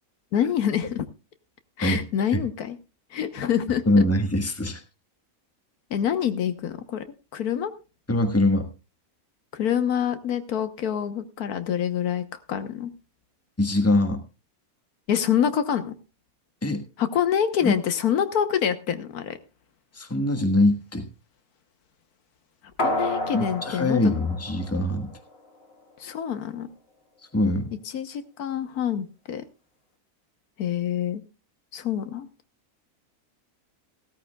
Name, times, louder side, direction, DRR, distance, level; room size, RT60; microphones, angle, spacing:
voice 1, 0.3-1.1 1.8-2.8 3.1-4.0 5.9-7.0 7.3-7.7 9.5-12.9 15.1-15.9 17.0-19.4 22.8-24.0 26.0-26.7 27.9-29.4 30.6-31.2 31.7-32.3, left 9 dB, 90° left, 10 dB, 1.5 m, -26 dB
voice 2, 3.9-4.8 8.1-8.7 13.6-14.2 16.6-16.8 17.6-17.7 19.9-21.0 23.3-25.1 27.3-27.7, left 1 dB, 10° left, 5 dB, 1.3 m, -23 dB
sound 1, 22.8-25.3 25.7-25.8, left 1 dB, 40° left, 2.0 m, -30 dB
16.5 x 13.5 x 2.3 m, 0.30 s
omnidirectional pair, 1.6 m